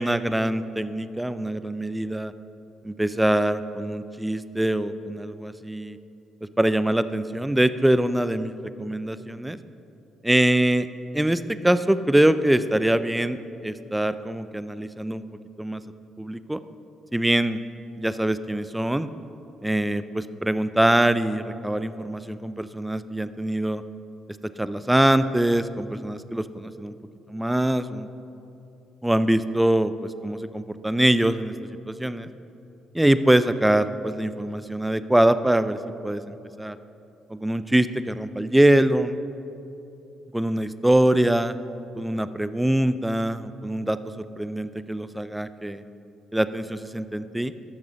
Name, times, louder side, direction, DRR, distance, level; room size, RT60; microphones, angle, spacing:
voice 1, 0.0-2.3 2.8-6.0 6.6-9.6 10.2-10.9 11.1-15.2 15.6-15.8 16.2-16.6 17.1-17.6 18.0-19.1 19.6-23.8 24.6-26.9 27.3-28.1 29.0-29.9 30.2-32.3 32.9-35.8 36.0-36.8 37.3-39.2 40.3-41.5 42.0-45.8 46.3-47.5, right 1 dB, 10° right, 13 dB, 0.5 m, -23 dB
13.0 x 6.7 x 5.1 m, 2.8 s
supercardioid pair, 60°, 0 cm